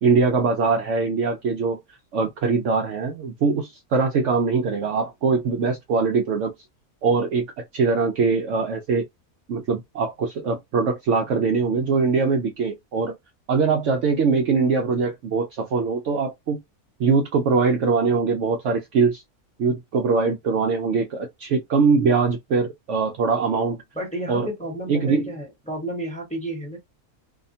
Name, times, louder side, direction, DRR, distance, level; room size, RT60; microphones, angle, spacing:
voice 1, 0.0-1.8 2.1-6.5 7.0-7.5 7.7-9.0 9.5-13.2 13.5-16.6 17.0-19.2 19.6-23.8 24.3-24.5 24.9-25.3, right 4 dB, 65° right, 0.8 m, -22 dB
voice 2, 23.9-26.8, right 1 dB, 5° left, 0.9 m, -31 dB
2.8 x 2.1 x 2.6 m
omnidirectional pair, 1.6 m